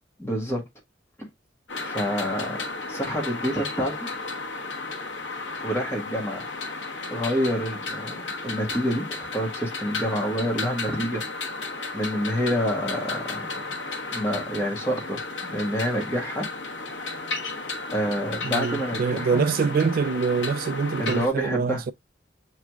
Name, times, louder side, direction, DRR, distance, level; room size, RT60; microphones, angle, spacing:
voice 1, 0.2-0.7 1.8-4.1 5.6-6.4 7.1-11.2 11.9-13.7 14.1-16.5 17.9-19.4 21.0-21.8, equal, 15° left, 1.5 m, -28 dB
sound 1, 1.7-21.3, left 3 dB, 80° left, 1.2 m, -33 dB
voice 2, 18.4-21.9, right 5 dB, 50° right, 0.3 m, -25 dB
7.1 x 3.1 x 2.3 m
head